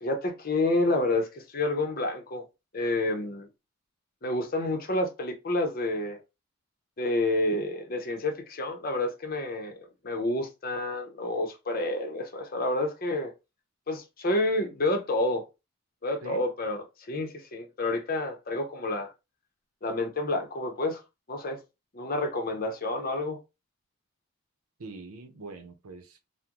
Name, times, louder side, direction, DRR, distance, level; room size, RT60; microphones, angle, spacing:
voice 1, 0.0-2.4 2.7-3.5 4.2-6.2 7.0-13.3 13.9-15.5 16.0-19.1 19.8-21.0 21.3-21.6 21.9-23.4, left 2 dB, 40° left, 0.6 m, -29 dB
voice 2, 24.8-26.3, right 3 dB, 85° right, 0.7 m, -43 dB
3.7 x 2.1 x 2.9 m
head